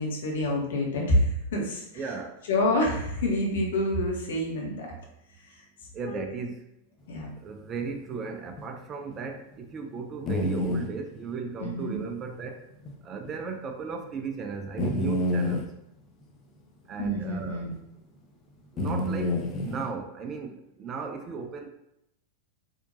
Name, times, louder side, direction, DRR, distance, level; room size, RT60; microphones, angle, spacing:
voice 1, 0.0-1.8 2.5-4.9 6.0-6.2 7.1-7.3 11.6-12.0 17.0-17.7, left 1 dB, 60° left, -1 dB, 0.9 m, -27 dB
voice 2, 1.9-2.4 5.9-6.6 7.4-12.7 13.0-15.7 16.9-17.7 18.7-21.7, right 5 dB, 25° right, 5 dB, 0.4 m, -36 dB
sound 1, 8.6-8.7 9.1-9.2 10.3-10.9 12.9-13.0 13.3-13.4 14.8-15.6 17.7-17.8 18.8-19.9, left 1 dB, 30° left, 0.5 m, -28 dB
4.2 x 2.7 x 2.6 m, 0.81 s
figure-of-eight pair, 90°, 0 cm